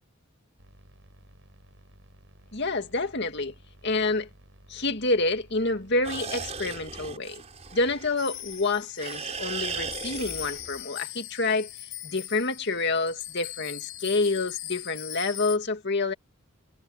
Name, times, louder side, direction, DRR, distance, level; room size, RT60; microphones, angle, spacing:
sound 1, 0.6-6.6, equal, 60° right, 7.9 m, -55 dB
voice 1, 2.5-3.5 3.8-4.3 4.7-7.4 7.7-11.7 12.0-16.1, left 3 dB, 55° left, 2.2 m, -28 dB
sound 2, 6.0-8.6 9.0-10.8, right 5 dB, 30° right, 4.4 m, -37 dB
sound 3, 8.2-15.6, left 15 dB, 75° left, 3.7 m, -40 dB
head